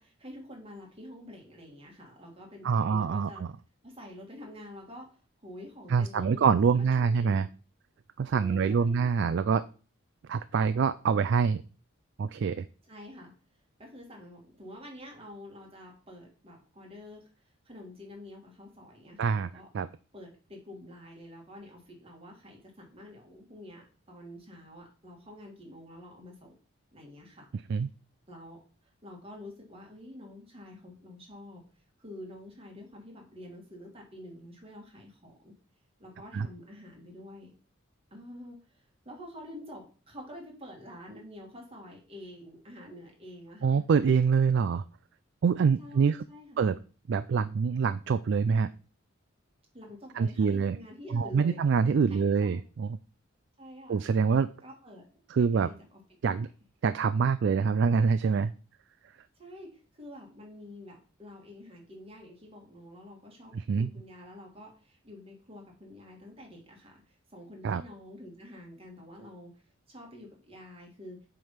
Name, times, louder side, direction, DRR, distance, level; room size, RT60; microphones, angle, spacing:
voice 1, 0.0-3.4 3.8-7.4 8.3-9.3 12.9-13.3 13.8-19.7 20.1-26.5 26.9-27.5 28.3-28.6 29.0-31.6 32.0-35.5 36.0-37.5 38.1-43.8 45.8-46.7 49.7-51.6 52.1-52.6 53.6-54.0 54.6-55.1 55.3-56.0 56.3-56.5 59.4-71.2, left 1 dB, 30° right, 0 dB, 2.0 m, -48 dB
voice 2, 2.6-3.5 5.9-7.5 8.2-9.6 10.3-11.6 12.2-12.7 19.2-19.9 27.7-27.9 36.3-36.5 43.6-44.8 45.4-46.2 46.6-46.8 47.1-48.7 50.2-50.8 51.1-53.0 53.9-54.5 55.3-55.7 56.2-56.5 56.8-58.5 63.5-63.9 67.6-67.8, right 5 dB, 55° right, 12 dB, 0.3 m, -25 dB
7.7 x 3.5 x 5.7 m, 0.37 s
head